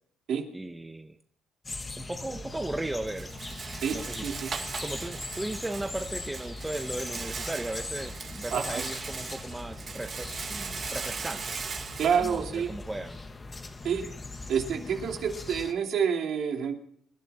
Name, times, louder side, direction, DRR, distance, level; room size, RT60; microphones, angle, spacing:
voice 1, 0.5-1.2 2.0-3.3 3.9-4.3 4.8-11.5 12.2-13.2, right 1 dB, 10° right, 7 dB, 1.1 m, -36 dB
sound 1, 1.6-15.7, left 3 dB, 25° left, 1.5 m, -41 dB
Rattle, 2.0-13.0, right 5 dB, 40° right, 1.9 m, -39 dB
voice 2, 8.5-8.8 12.0-12.7 13.8-14.1 14.5-16.8, right 7 dB, 65° right, 2 dB, 2.9 m, -28 dB
25.0 x 11.0 x 4.3 m, 0.67 s
supercardioid pair, 80°, 0 cm